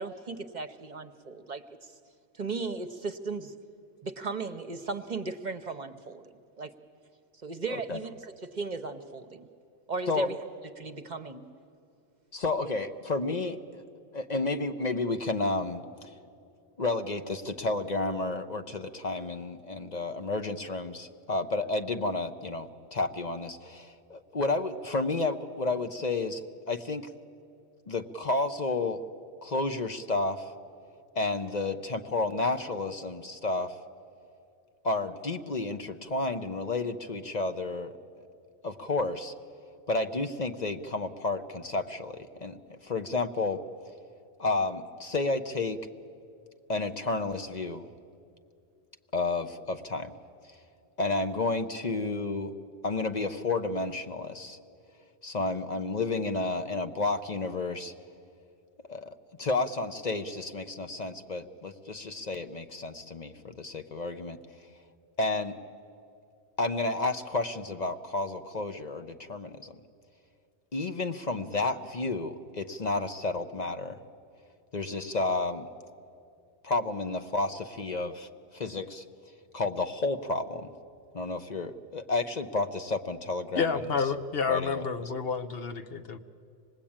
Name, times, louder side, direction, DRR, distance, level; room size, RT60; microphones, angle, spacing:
voice 1, 0.0-1.9 2.3-3.5 4.0-6.2 6.6-6.7 7.4-9.5 9.9-10.4 10.8-11.5, right 4 dB, 45° right, 8 dB, 1.0 m, -36 dB
voice 2, 7.7-8.0 10.1-10.3 12.3-13.8 14.1-16.1 16.8-27.1 27.9-29.0 29.4-30.5 31.1-33.8 34.8-38.3 38.6-39.3 39.9-43.7 44.4-45.9 46.7-47.9 49.1-50.2 50.4-50.6 51.0-52.6 52.8-54.6 55.2-57.9 58.9-64.4 65.2-65.6 66.6-69.8 70.7-74.0 74.7-75.7 76.6-79.0 79.5-80.7 81.1-83.8 84.5-84.9, left 3 dB, 45° left, 7 dB, 0.9 m, -31 dB
voice 3, 83.5-86.2, left 5 dB, 60° left, 8 dB, 1.1 m, -29 dB
26.0 x 19.5 x 8.8 m, 2.5 s
omnidirectional pair, 1.1 m